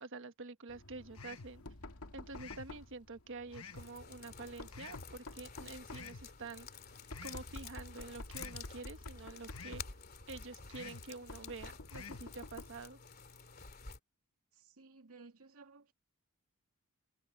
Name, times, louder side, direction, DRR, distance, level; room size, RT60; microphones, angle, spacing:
voice 1, 0.0-1.6 2.1-6.8 7.2-9.8 10.3-13.0, right 3 dB, 60° right, 1.4 m, -48 dB
Knock, 0.7-12.9, left 2 dB, 85° left, 2.0 m, -51 dB
sound 1, 1.1-1.6 2.3-2.7 3.5-3.9 4.7-5.1 5.9-6.3 7.1-7.5 8.3-8.7 9.5-9.9 10.7-11.1 11.9-12.3, left 5 dB, 70° left, 1.2 m, -50 dB
sound 2, 3.7-14.0, left 6 dB, 45° left, 2.9 m, -52 dB
voice 2, 14.6-15.9, right 4 dB, 80° right, 2.5 m, -57 dB
head